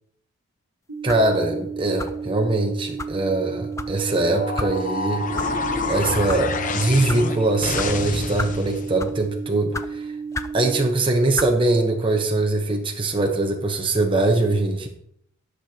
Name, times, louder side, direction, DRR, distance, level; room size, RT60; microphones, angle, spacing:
sound 1, 0.9-10.9, right 5 dB, 85° right, 1.5 m, -33 dB
voice 1, 1.0-5.3 5.9-10.1 10.5-14.9, right 2 dB, 25° right, 2 dB, 1.0 m, -22 dB
sound 2, 1.1-1.3 2.0-2.3 3.0-3.1 3.8-3.9 4.6-4.7 5.3-5.5 6.1-6.4 7.1-7.2 7.8-7.9 8.4-8.6 9.0-9.2 9.7-9.9 10.3-10.6 11.3-11.5, left 2 dB, 15° left, 0.4 m, -31 dB
sound 3, 4.4-8.9, left 3 dB, 40° left, 0.8 m, -28 dB
16.5 x 6.7 x 2.9 m, 0.74 s
head